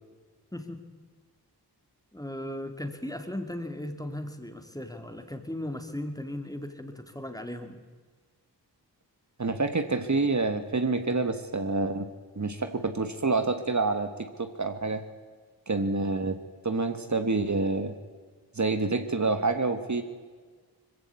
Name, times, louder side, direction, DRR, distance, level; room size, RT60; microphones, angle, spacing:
voice 1, 2.1-7.8, left 1 dB, 10° left, 6 dB, 2.3 m, -37 dB
voice 2, 9.4-12.1 12.4-15.0 15.7-16.4 16.6-18.0 18.5-20.0, right 3 dB, 45° right, 8 dB, 1.5 m, -27 dB
21.0 x 15.5 x 8.3 m, 1.5 s
cardioid pair, 45°, 40 cm